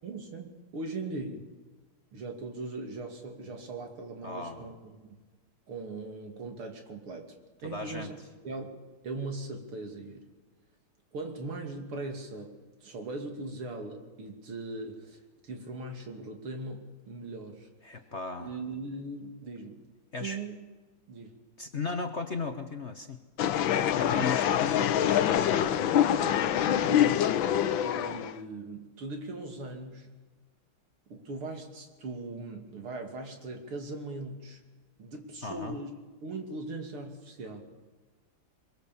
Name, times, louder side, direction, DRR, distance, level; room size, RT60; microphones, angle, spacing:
voice 1, 0.0-1.5 2.1-5.2 5.7-7.3 7.6-8.2 8.4-8.8 9.0-10.3 11.1-18.0 18.4-19.8 20.2-20.6 21.1-21.4 24.1-24.5 26.7-27.2 27.8-30.1 31.1-34.6 35.0-35.9 36.2-37.6, right 2 dB, 80° right, 4 dB, 3.5 m, -40 dB
voice 2, 4.2-4.7 7.6-8.1 17.8-18.5 20.1-20.4 21.6-23.2 23.7-26.1 35.4-35.8, left 4 dB, 40° left, 6 dB, 1.2 m, -36 dB
sound 1, 23.4-28.3, left 10 dB, 70° left, 1.5 m, -25 dB
23.5 x 22.5 x 7.1 m, 1.3 s
omnidirectional pair, 2.4 m